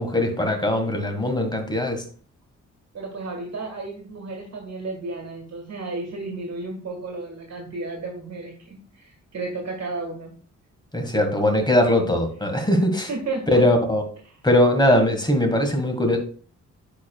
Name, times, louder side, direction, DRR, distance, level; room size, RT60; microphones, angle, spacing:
voice 1, 0.0-2.0 10.9-13.1 13.5-14.0 14.4-16.2, left 1 dB, 15° left, 5 dB, 1.6 m, -20 dB
voice 2, 2.9-10.3 13.1-13.7, right 3 dB, 60° right, 2 dB, 1.7 m, -33 dB
9.6 x 4.8 x 2.3 m, 0.42 s
cardioid pair, 85°, 30 cm